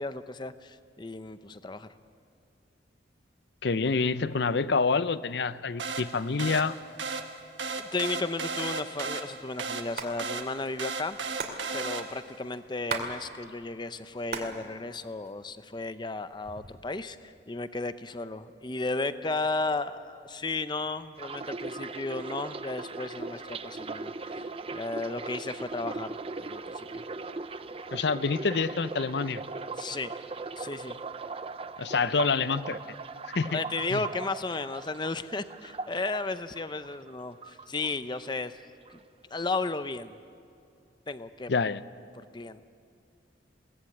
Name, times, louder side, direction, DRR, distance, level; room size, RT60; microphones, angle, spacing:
voice 1, 0.0-1.9 7.7-11.2 11.7-27.0 29.8-30.1 30.6-31.0 33.5-38.6 38.9-39.0 39.3-40.1 41.1-41.5 42.2-42.6, left 3 dB, 25° left, 12 dB, 0.7 m, -34 dB
voice 2, 3.6-6.8 27.9-29.4 31.8-32.8 33.3-33.6 33.9-34.0 41.5-41.8, left 4 dB, 65° left, 15 dB, 0.6 m, -27 dB
sound 1, 5.8-12.4, right 4 dB, 85° right, 1.4 m, -35 dB
Hands, 10.0-10.1 10.4-10.5 10.7-13.1 13.4-14.6 14.9-15.7 16.3-16.9, right 4 dB, 55° right, 2.4 m, -36 dB
sound 2, 21.2-37.1 37.4-38.3 38.6-39.0, right 3 dB, 30° right, 0.6 m, -39 dB
22.0 x 17.5 x 8.7 m, 2.4 s
head